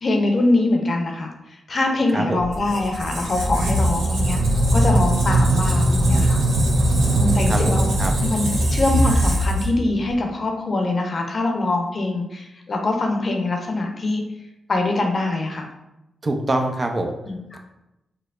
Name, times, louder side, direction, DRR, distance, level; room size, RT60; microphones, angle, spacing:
voice 1, 0.0-1.3 1.7-4.4 4.7-6.4 7.1-7.9 8.2-14.2 14.7-15.7 17.3-17.4, left 2 dB, 50° left, 2 dB, 0.6 m, -23 dB
Squeak, 2.4-10.1, right 1 dB, 85° right, 0.7 m, -20 dB
voice 2, 7.1-8.1 16.2-17.1, right 2 dB, 40° right, 4 dB, 0.5 m, -25 dB
4.5 x 2.1 x 2.4 m, 0.91 s
supercardioid pair, 45°, 0 cm